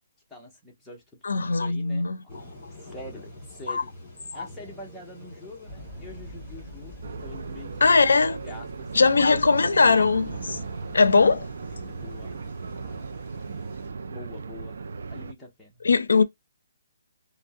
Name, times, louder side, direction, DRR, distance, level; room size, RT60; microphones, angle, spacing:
voice 1, 0.3-3.9 4.3-7.9 8.4-10.1 11.9-12.4 12.8-13.1 14.1-15.9, left 2 dB, 5° left, 0.7 m, -45 dB
voice 2, 1.2-2.2 3.7-3.8 4.3-4.4 7.8-8.4 8.9-10.6 10.9-11.5 15.8-16.2, left 4 dB, 85° left, 0.4 m, -20 dB
sound 1, 2.3-13.9, left 2 dB, 25° left, 1.6 m, -47 dB
sound 2, 5.7-12.4, equal, 25° right, 1.8 m, -45 dB
sound 3, 7.0-15.3, right 4 dB, 60° right, 0.3 m, -37 dB
3.4 x 2.0 x 2.5 m
hypercardioid pair, 175°, 0 cm